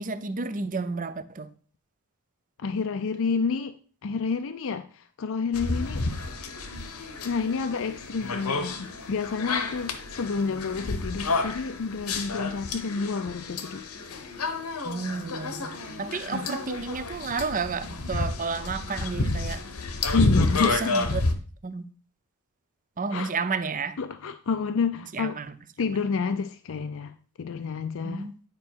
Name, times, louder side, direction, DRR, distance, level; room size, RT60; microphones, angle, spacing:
voice 1, 0.0-1.5 14.8-19.6 20.6-21.2 21.6-21.8 23.0-24.0 25.1-25.5 28.0-28.3, right 4 dB, 35° right, 0.6 m, -31 dB
voice 2, 2.6-3.8 4.0-6.0 7.2-13.8 16.3-16.5 20.1-20.9 23.1-23.3 24.0-25.4 25.8-28.3, left 5 dB, 60° left, 0.5 m, -29 dB
sound 1, 5.5-21.3, left 3 dB, 80° left, 1.0 m, -30 dB
9.5 x 5.2 x 4.6 m
head